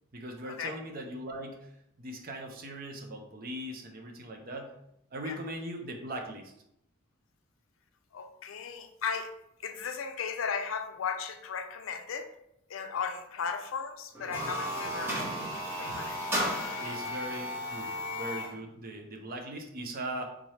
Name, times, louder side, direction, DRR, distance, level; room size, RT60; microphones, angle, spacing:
voice 1, 0.1-1.7 2.0-4.7 5.1-6.5 16.8-20.3, right 1 dB, 45° right, 3 dB, 0.5 m, -40 dB
voice 2, 8.1-9.3 9.6-12.2 12.7-15.3 15.5-16.2, left 6 dB, 70° left, 7 dB, 0.4 m, -36 dB
sound 1, 14.2-18.6, equal, 10° right, 0.9 m, -34 dB
3.6 x 2.8 x 3.2 m, 0.79 s
head